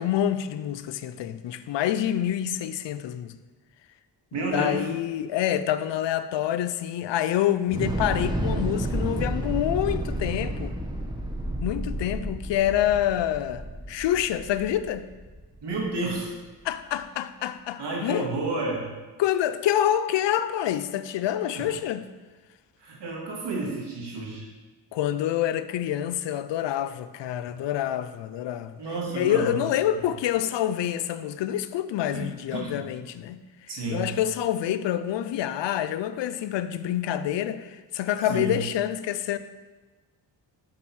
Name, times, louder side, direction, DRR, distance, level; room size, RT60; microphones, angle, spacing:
voice 1, 0.0-3.3 4.5-10.7 11.6-15.1 16.6-18.3 19.2-22.0 24.9-28.8 29.1-33.4 33.9-39.4, left 11 dB, 80° left, 0.5 m, -27 dB
voice 2, 4.3-4.8 15.6-16.3 17.8-18.9 21.5-21.7 22.8-24.5 28.8-29.6 32.1-32.8 33.7-34.0 38.3-38.6, right 3 dB, 70° right, 2.4 m, -31 dB
Thunder / Explosion, 7.7-15.9, right 1 dB, 10° right, 1.1 m, -31 dB
7.6 x 3.9 x 6.2 m
cardioid pair, 70°, 43 cm